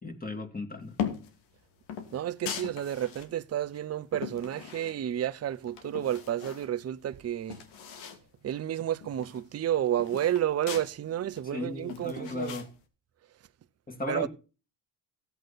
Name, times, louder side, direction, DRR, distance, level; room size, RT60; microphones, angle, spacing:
voice 1, 0.0-1.0 11.5-12.7 13.9-14.3, left 2 dB, 20° left, 2.5 m, -36 dB
sound 1, 0.9-1.4 1.9-3.3 3.7-5.3 5.6-6.7 7.0-7.1 7.3-8.2 8.5-8.6 9.0-10.9 11.3-12.7, left 8 dB, 85° left, 2.5 m, -39 dB
voice 2, 2.1-7.6 8.4-12.6 14.1-14.3, right 11 dB, 35° right, 0.7 m, -31 dB
15.5 x 8.0 x 4.2 m
supercardioid pair, 90°, 46 cm